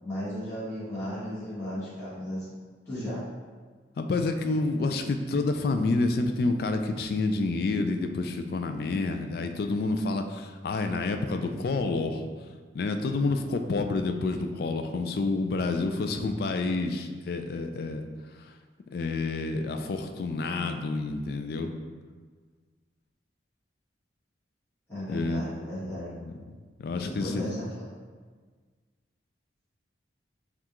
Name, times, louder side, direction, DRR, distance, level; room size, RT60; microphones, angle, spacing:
voice 1, 0.0-2.5 2.8-3.2 24.9-26.1 27.0-27.9, equal, 10° left, -15 dB, 1.5 m, -35 dB
voice 2, 4.0-12.3 12.7-18.1 18.3-18.5 18.9-21.7 25.1-25.4 25.9-27.5, left 3 dB, 55° left, 6 dB, 0.3 m, -29 dB
5.5 x 2.4 x 3.0 m, 1.5 s
head